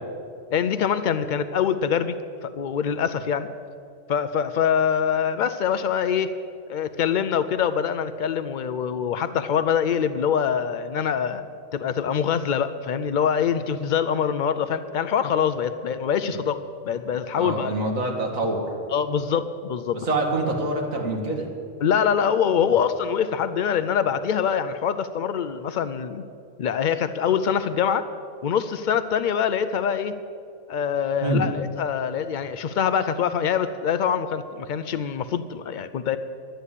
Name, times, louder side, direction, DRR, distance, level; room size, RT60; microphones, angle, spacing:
voice 1, 0.5-2.1 2.4-3.5 4.1-6.3 6.7-11.4 11.7-17.7 18.9-20.0 21.8-26.2 26.6-28.1 28.4-30.2 30.7-36.2, left 7 dB, 90° left, 11 dB, 0.4 m, -24 dB
voice 2, 17.4-18.7 20.1-21.5 31.2-31.4, right 2 dB, 80° right, 0 dB, 2.2 m, -25 dB
11.5 x 9.1 x 8.3 m, 2.5 s
omnidirectional pair, 1.4 m